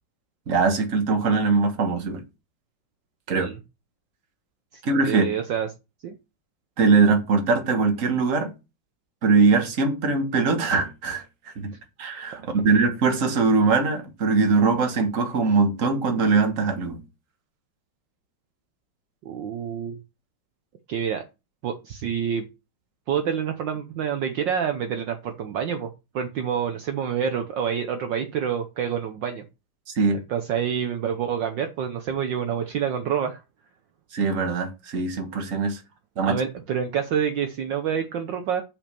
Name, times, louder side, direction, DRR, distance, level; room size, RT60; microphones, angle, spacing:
voice 1, 0.5-2.2 3.3-3.5 4.8-5.2 6.8-8.5 9.2-11.2 11.6-11.7 12.0-17.0 29.9-30.2 34.1-35.8 36.2-36.3, right 4 dB, 40° right, 1.7 m, -21 dB
voice 2, 4.7-5.7 6.0-6.1 19.2-20.0 20.9-21.2 21.6-22.5 23.1-25.9 26.1-29.4 30.3-33.4 36.2-38.6, right 8 dB, 65° right, 1.4 m, -27 dB
5.7 x 5.3 x 6.7 m
omnidirectional pair, 2.3 m